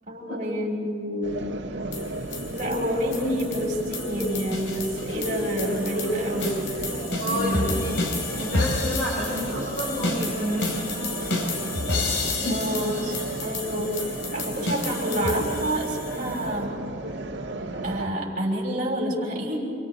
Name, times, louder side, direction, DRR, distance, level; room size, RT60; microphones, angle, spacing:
voice 1, 0.1-1.4 2.5-6.5 7.3-7.7 12.5-13.1 13.4-14.0 14.3-16.8 17.8-19.7, equal, 45° right, -2 dB, 5.8 m, -28 dB
sound 1, 1.2-18.1, right 2 dB, 75° right, 1.5 m, -34 dB
sound 2, 1.9-16.5, left 3 dB, 75° left, 2.6 m, -31 dB
voice 2, 7.2-7.9 8.4-10.9 12.4-12.6, equal, 40° left, -9 dB, 7.1 m, -29 dB
29.0 x 28.0 x 4.2 m, 2.4 s
head